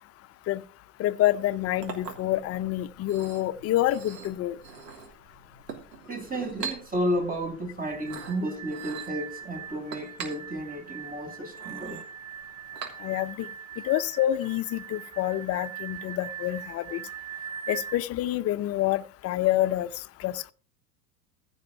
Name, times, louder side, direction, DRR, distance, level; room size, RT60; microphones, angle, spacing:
voice 1, 1.0-4.6 13.0-13.5 13.8-17.0 17.7-19.9 20.2-20.4, left 14 dB, 30° left, 0.6 m, -27 dB
Chink clink, 1.4-13.4, right 6 dB, 75° right, 3.2 m, -43 dB
voice 2, 6.1-12.0, right 1 dB, 15° right, 2.8 m, -32 dB
sound 1, 7.8-18.0, right 9 dB, 45° right, 2.1 m, -41 dB
15.0 x 5.5 x 5.8 m
figure-of-eight pair, 80°, 49 cm